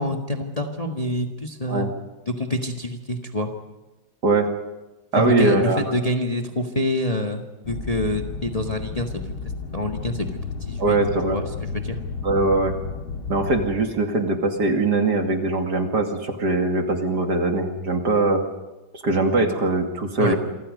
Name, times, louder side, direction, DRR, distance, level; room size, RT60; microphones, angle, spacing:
voice 1, 0.0-1.9 2.3-3.5 5.2-9.1 9.7-10.4 10.7-11.0 11.3-11.4 11.8-12.0 20.2-20.3, left 1 dB, 20° left, 3 dB, 1.5 m, -26 dB
voice 2, 5.1-5.9 10.8-11.4 12.2-12.7 13.3-18.4 18.9-20.4, right 2 dB, 55° right, 3 dB, 2.9 m, -21 dB
sound 1, 7.6-13.8, left 4 dB, 80° left, 2.7 m, -32 dB
28.0 x 25.0 x 5.4 m, 1.1 s
omnidirectional pair, 2.2 m